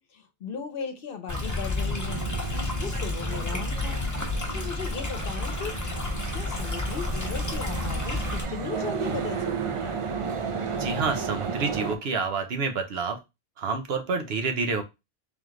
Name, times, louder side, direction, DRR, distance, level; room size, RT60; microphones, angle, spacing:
voice 1, 0.0-2.2 2.8-4.0 4.5-5.7 6.3-10.0, left 6 dB, 60° left, 0.9 m, -37 dB
Stream, 1.3-8.4, left 2 dB, 20° left, 0.9 m, -30 dB
sound 1, 1.8-12.0, right 5 dB, 45° right, 0.4 m, -33 dB
voice 2, 10.8-13.2 13.6-14.8, right 4 dB, 75° right, 1.0 m, -28 dB
3.5 x 3.1 x 3.6 m
omnidirectional pair, 1.1 m